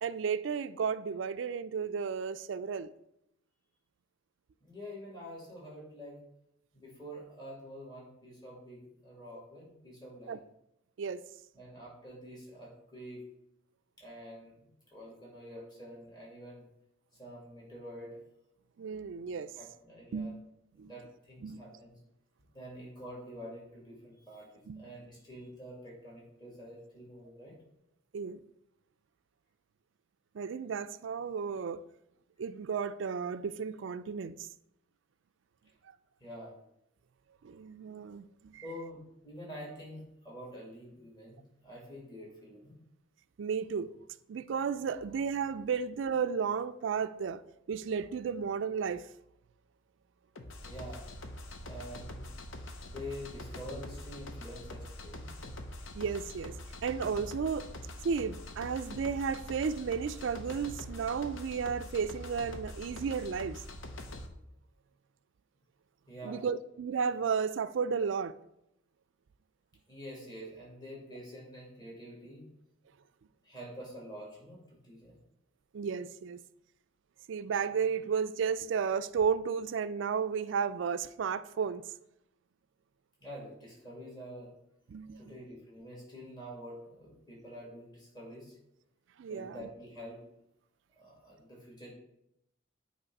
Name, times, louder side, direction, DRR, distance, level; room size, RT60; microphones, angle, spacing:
voice 1, 0.0-2.9 10.3-10.4 11.0-11.3 18.8-19.5 20.1-20.3 20.8-20.9 21.4-21.6 24.7-24.8 28.1-28.4 30.3-31.8 32.4-34.5 37.4-38.6 43.4-43.9 44.3-47.4 47.7-49.0 55.9-56.6 56.8-57.7 58.0-63.6 66.2-68.3 75.7-76.4 77.3-81.8 84.9-85.2 89.2-89.7, right 6 dB, 65° right, 0.3 m, -33 dB
voice 2, 4.6-6.2 6.7-10.4 11.5-13.3 14.0-16.7 17.2-18.2 19.5-20.3 20.7-22.0 22.5-24.5 24.8-27.5 36.2-36.5 38.6-42.7 50.6-51.0 51.6-52.3 52.8-55.4 66.1-66.4 69.9-72.5 73.4-75.1 83.2-84.5 85.2-88.6 89.3-90.3 91.0-91.9, equal, 20° left, 2.3 m, -47 dB
sound 1, 50.4-64.3, left 1 dB, 75° left, 0.8 m, -44 dB
8.2 x 3.1 x 5.3 m
head